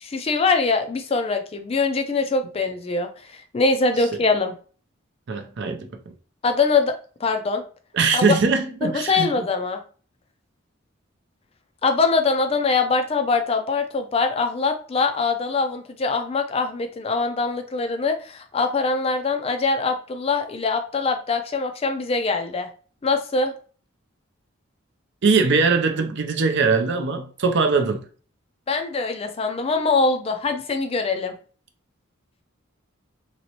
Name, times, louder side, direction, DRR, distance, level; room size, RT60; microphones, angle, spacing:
voice 1, 0.0-3.1 3.5-4.5 6.4-6.9 7.2-7.6 8.1-8.2 8.8-9.8 11.8-22.7 23.0-23.5 28.7-31.3, left 4 dB, 30° left, 0.4 m, -23 dB
voice 2, 5.3-5.9 7.9-9.3 25.2-28.0, right 4 dB, 55° right, 0.5 m, -21 dB
3.0 x 2.9 x 2.8 m
head